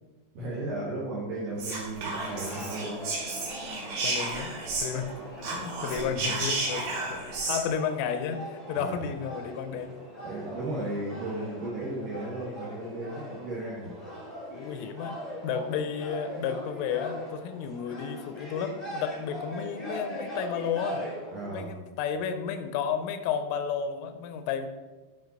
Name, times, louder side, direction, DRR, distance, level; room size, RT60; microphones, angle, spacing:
voice 1, 0.3-3.0 8.7-9.0 10.2-13.9 21.3-21.7, right 2 dB, 75° right, -5 dB, 2.0 m, -35 dB
Whispering, 1.6-5.1 5.4-7.6, right 3 dB, 55° right, 3.1 m, -32 dB
sound 1, 2.1-21.6, equal, 50° left, 0.4 m, -41 dB
voice 2, 4.0-4.5 4.8-5.1 5.5-10.0 14.5-15.2 15.4-21.0 21.5-24.7, left 7 dB, 90° left, 9 dB, 3.2 m, -32 dB
11.0 x 5.2 x 3.9 m, 1.2 s
omnidirectional pair, 5.7 m